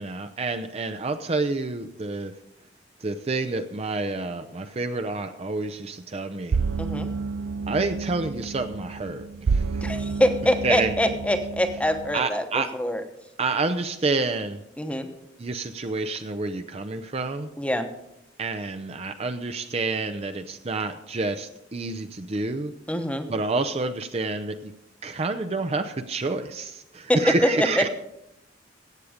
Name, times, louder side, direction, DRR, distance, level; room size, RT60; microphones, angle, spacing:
voice 1, 0.0-2.4 3.0-6.6 7.7-10.0 10.6-10.9 12.1-12.7 13.4-14.6 15.4-17.5 18.4-22.7 23.3-24.7 25.0-27.9, right 3 dB, 30° right, 8 dB, 0.5 m, -28 dB
sound 1, 6.5-12.2, right 4 dB, 90° right, 0.5 m, -29 dB
voice 2, 6.8-7.1 9.8-13.0 14.8-15.1 17.6-17.9 22.9-23.3 27.1-27.2 27.6-27.9, left 1 dB, 5° left, 7 dB, 0.9 m, -25 dB
15.0 x 8.5 x 5.0 m, 0.84 s
head